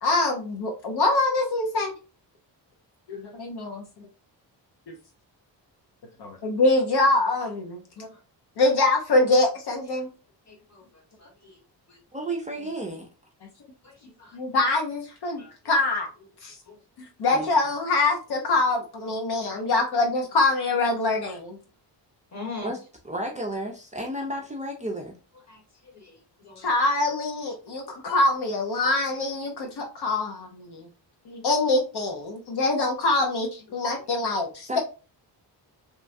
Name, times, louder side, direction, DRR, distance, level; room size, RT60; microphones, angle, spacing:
voice 1, 0.0-1.9 3.1-3.8 4.9-5.0 6.2-8.1 8.6-10.1 14.3-16.1 16.4-16.5 17.2-21.6 26.6-30.9 31.3-34.8, left 2 dB, 60° left, 2 dB, 0.8 m, -24 dB
voice 2, 10.5-11.6 13.8-14.4 15.3-15.5 16.6-16.8 22.3-22.7 23.3-23.4 25.5-26.7 29.6-29.7, left 3 dB, 35° left, 0 dB, 1.5 m, -43 dB
voice 3, 12.1-13.1 17.3-17.5 22.6-22.8 23.0-25.2 34.7-34.8, right 1 dB, 15° right, 0 dB, 0.5 m, -32 dB
3.1 x 2.2 x 2.5 m, 0.33 s
cardioid pair, 95°, 45 cm